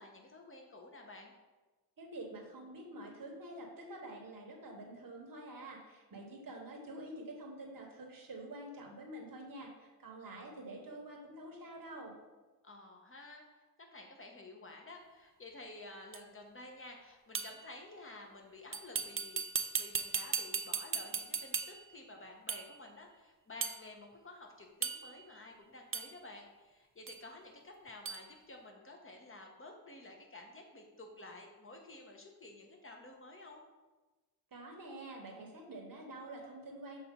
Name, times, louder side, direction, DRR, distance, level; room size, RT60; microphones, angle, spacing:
voice 1, 0.0-1.3 12.6-19.4 19.8-33.6, left 2 dB, 35° left, 2 dB, 1.1 m, -52 dB
voice 2, 2.0-12.2 34.5-37.0, right 1 dB, 60° right, 0 dB, 1.2 m, -47 dB
sound 1, 16.1-16.2 17.3-17.7 18.7-21.9 22.5-22.8 23.6-23.8 24.8-25.2 25.9-26.2 27.1-27.2 28.1-28.3, right 6 dB, 35° right, 0.4 m, -37 dB
6.6 x 4.1 x 3.8 m, 1.2 s
wide cardioid pair, 70°, 39 cm